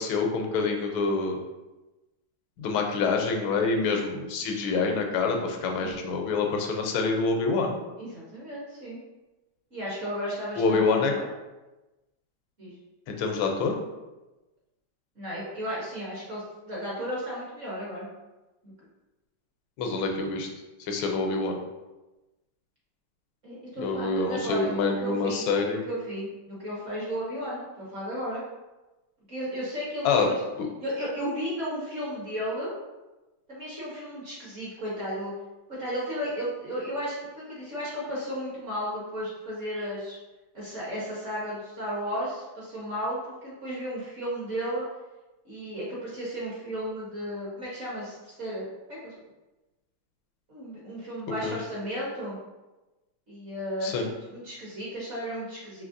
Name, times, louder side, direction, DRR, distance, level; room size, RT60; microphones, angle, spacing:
voice 1, 0.0-1.4 2.6-7.8 10.6-11.1 13.1-13.8 19.8-20.5 20.8-21.6 23.8-25.8 30.0-30.3 30.6-30.7 51.4-51.6 53.8-54.1, left 4 dB, 80° left, 3 dB, 1.4 m, -26 dB
voice 2, 8.0-9.0 9.7-11.3 12.6-12.7 15.2-18.1 18.6-18.7 23.4-28.4 29.3-30.4 30.8-32.7 33.5-35.3 35.7-40.2 40.5-44.8 45.4-49.2 50.5-52.4 53.3-55.8, equal, 45° right, -7 dB, 1.1 m, -34 dB
5.2 x 3.1 x 2.6 m, 1.1 s
omnidirectional pair, 2.3 m